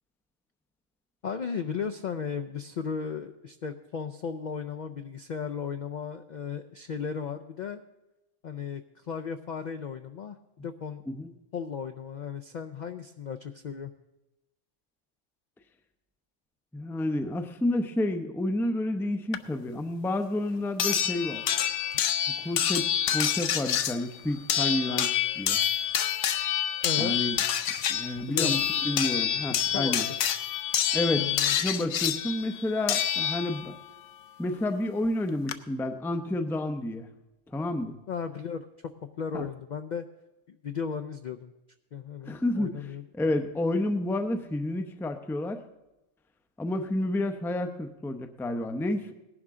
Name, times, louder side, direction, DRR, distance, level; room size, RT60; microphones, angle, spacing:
voice 1, 1.2-7.8 8.4-11.0 11.5-13.9 26.8-27.1 28.3-28.5 29.6-30.0 31.1-31.6 38.1-40.1 40.5-41.5 41.9-43.3, left 6 dB, 60° left, 7 dB, 0.4 m, -35 dB
voice 2, 16.7-21.4 22.4-25.6 27.0-27.4 27.9-30.1 30.9-31.3 31.6-33.8 34.4-37.1 37.5-38.0 39.3-39.5 42.3-42.8 43.1-45.6 46.6-49.1, left 1 dB, 5° left, 7 dB, 0.4 m, -30 dB
sound 1, 19.3-19.4 20.8-33.8 35.1-35.2 35.5-35.6, left 9 dB, 75° left, 1.0 m, -27 dB
18.0 x 11.0 x 3.7 m, 0.98 s
omnidirectional pair, 1.3 m